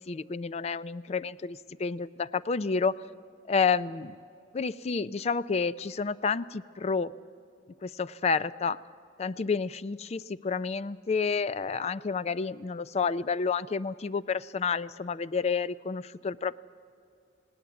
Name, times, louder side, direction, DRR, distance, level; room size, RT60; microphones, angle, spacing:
voice 1, 0.0-3.0 3.5-4.2 4.5-7.1 7.8-8.8 9.2-16.6, left 5 dB, 35° left, 17 dB, 0.4 m, -30 dB
19.0 x 18.0 x 8.0 m, 2.5 s
head